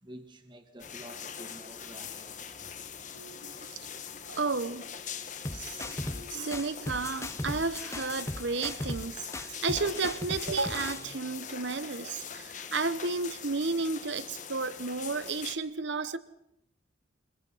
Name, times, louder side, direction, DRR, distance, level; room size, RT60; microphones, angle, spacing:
voice 1, 0.0-2.8, right 1 dB, 25° right, 1.9 m, -50 dB
sound 1, 0.8-15.6, left 7 dB, 40° left, 1.3 m, -42 dB
voice 2, 3.1-3.9 4.3-4.9 5.5-16.2, right 4 dB, 70° right, 1.1 m, -33 dB
sound 2, 5.4-6.2 6.5-9.1 9.3-11.0, left 1 dB, 15° left, 0.8 m, -37 dB
23.5 x 21.5 x 5.7 m
head